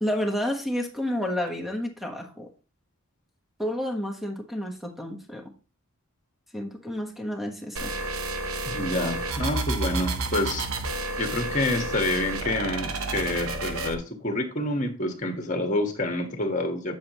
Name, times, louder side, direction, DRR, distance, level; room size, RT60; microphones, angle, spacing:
voice 1, 0.0-2.5 3.6-5.4 6.5-7.9, left 1 dB, ahead, 1.2 m, -30 dB
sound 1, 7.8-13.9, right 2 dB, 65° right, 0.9 m, -30 dB
voice 2, 8.7-10.7 11.2-17.0, left 1 dB, 35° left, 1.4 m, -28 dB
8.5 x 7.3 x 3.0 m
head